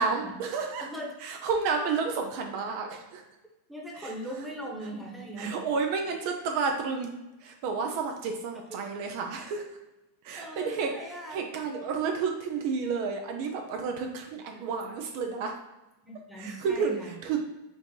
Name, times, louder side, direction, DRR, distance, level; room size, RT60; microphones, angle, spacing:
voice 1, 0.0-0.9 1.2-3.2 3.9-4.5 5.4-9.8 10.2-15.6 16.3-17.4, right 5 dB, 55° right, 3 dB, 0.6 m, -31 dB
voice 2, 0.8-1.1 3.7-5.5 8.7-8.8 10.4-11.4 11.7-11.8 16.0-17.0, right 1 dB, 5° right, -1 dB, 1.2 m, -39 dB
5.2 x 2.6 x 3.8 m, 0.99 s
hypercardioid pair, 115°, 0 cm